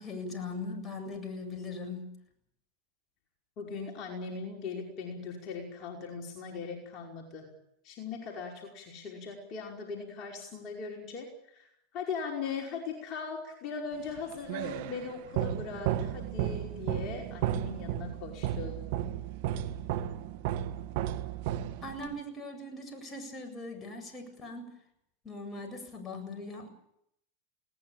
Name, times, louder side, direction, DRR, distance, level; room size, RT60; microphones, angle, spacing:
voice 1, 0.0-2.1 21.8-24.7 25.2-26.7, left 2 dB, 20° left, 4 dB, 7.8 m, -40 dB
voice 2, 3.6-7.5 7.8-18.9, left 5 dB, 45° left, 0 dB, 5.2 m, -39 dB
sound 1, 14.1-22.2, right 11 dB, 65° right, 1.8 m, -34 dB
21.0 x 18.5 x 9.0 m, 0.76 s
hypercardioid pair, 100°, 0 cm